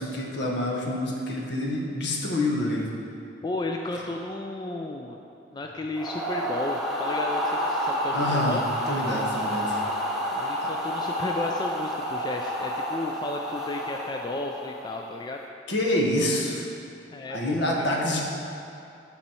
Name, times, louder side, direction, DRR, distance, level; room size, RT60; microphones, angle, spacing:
voice 1, 0.0-2.9 8.1-9.8 10.6-10.7 15.7-16.7 17.3-18.2, left 1 dB, 65° left, -1 dB, 1.1 m, -27 dB
voice 2, 3.4-5.2 5.5-8.7 10.3-15.4 17.1-17.6, left 2 dB, 25° left, 2 dB, 0.3 m, -33 dB
sound 1, 5.9-15.0, equal, ahead, 1.0 m, -29 dB
11.5 x 4.2 x 4.4 m, 2.6 s
head